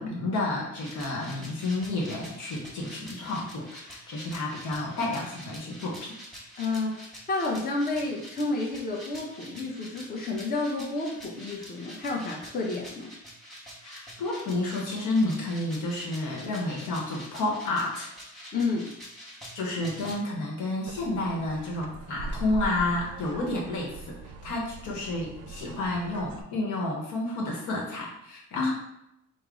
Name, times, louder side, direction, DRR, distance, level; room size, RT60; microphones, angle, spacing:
voice 1, 0.0-6.2 13.8-18.1 19.5-28.7, left 2 dB, 85° left, -2 dB, 1.0 m, -30 dB
sound 1, 0.8-20.2, equal, ahead, 1.1 m, -46 dB
voice 2, 6.6-13.1 18.5-18.9 28.6-28.7, left 3 dB, 30° left, -1 dB, 0.7 m, -30 dB
sound 2, 20.9-26.4, right 2 dB, 75° right, 0.5 m, -41 dB
3.6 x 2.1 x 3.6 m, 0.80 s
cardioid pair, 90°, 30 cm